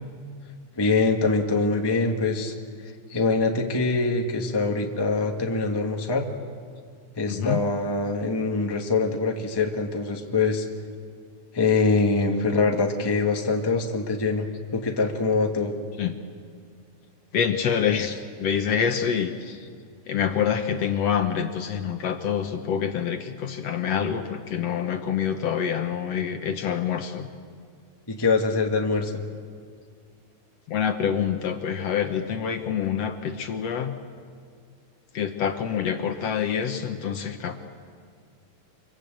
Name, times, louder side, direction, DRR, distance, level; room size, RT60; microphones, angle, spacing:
voice 1, 0.7-2.5 3.1-6.2 7.2-10.7 11.5-14.5 14.7-15.7 28.1-29.2, left 3 dB, 10° left, 2 dB, 1.3 m, -24 dB
voice 2, 7.3-7.6 16.0-16.2 17.3-19.7 20.1-27.3 30.7-33.9 35.1-37.6, left 8 dB, 65° left, 6 dB, 2.0 m, -26 dB
26.5 x 25.0 x 7.8 m, 2.1 s
omnidirectional pair, 3.4 m